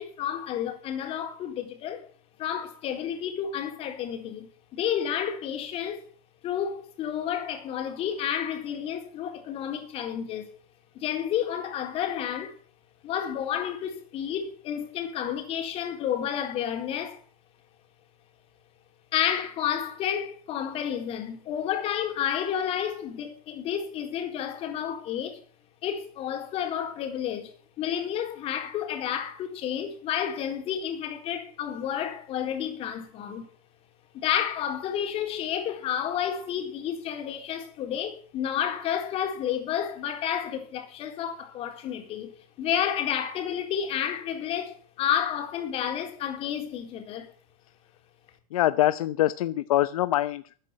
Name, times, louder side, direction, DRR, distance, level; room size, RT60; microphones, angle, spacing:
voice 1, 0.0-2.1 2.4-6.0 6.4-10.5 10.9-12.6 13.0-17.2 19.1-25.4 25.8-27.5 27.8-33.5 34.1-47.3, left 9 dB, 30° left, 3.9 m, -30 dB
voice 2, 48.5-50.5, left 14 dB, 70° left, 0.9 m, -24 dB
14.0 x 9.7 x 8.6 m
supercardioid pair, 150°, 19 cm